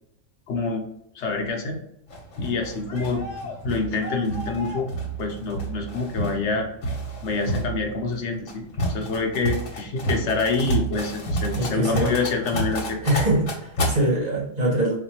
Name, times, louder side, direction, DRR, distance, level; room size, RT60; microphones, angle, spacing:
voice 1, 0.5-0.9 1.1-1.8 2.4-4.9 5.2-6.7 7.2-8.6 8.9-13.0, left 3 dB, 65° left, 2 dB, 1.1 m, -26 dB
sound 1, 2.1-13.9, right 1 dB, 85° left, 1.4 m, -30 dB
voice 2, 11.5-12.1 13.0-15.0, right 1 dB, 35° right, -5 dB, 1.3 m, -23 dB
4.1 x 2.7 x 2.9 m, 0.78 s
omnidirectional pair, 1.3 m